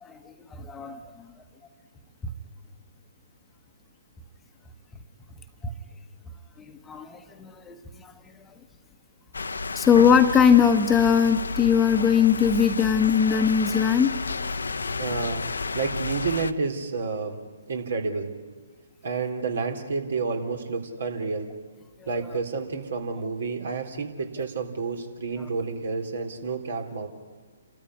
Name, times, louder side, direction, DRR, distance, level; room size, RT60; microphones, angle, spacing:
voice 1, 0.0-1.0 5.6-5.7 6.9-8.1 9.7-14.1 22.0-22.3 25.4-25.5, left 7 dB, 10° left, 7 dB, 1.3 m, -21 dB
sound 1, 9.3-16.5, left 3 dB, 75° left, 1.0 m, -31 dB
voice 2, 15.0-15.5 15.7-17.4 17.7-18.3 19.0-21.5 22.1-27.1, right 4 dB, 60° right, 5 dB, 3.6 m, -30 dB
29.5 x 13.5 x 9.9 m, 1.5 s
figure-of-eight pair, 130°, 0 cm